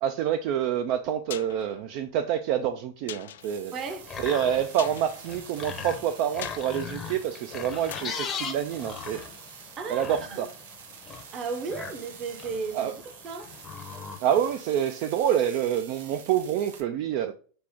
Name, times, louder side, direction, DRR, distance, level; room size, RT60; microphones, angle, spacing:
voice 1, 0.0-3.7 4.2-9.2 9.9-10.5 12.7-13.0 14.2-17.3, right 10 dB, 45° right, 0.3 m, -27 dB
sound 1, 0.9-9.7 10.0-10.1, left 11 dB, 90° left, 0.3 m, -46 dB
sound 2, 3.4-16.8, right 7 dB, 75° right, 0.9 m, -47 dB
voice 2, 3.7-4.0 9.8-10.5 11.3-13.5, right 4 dB, 25° right, 0.7 m, -35 dB
sound 3, 3.8-14.6, left 6 dB, 20° left, 0.7 m, -40 dB
5.9 x 2.5 x 3.5 m
supercardioid pair, 160°, 0 cm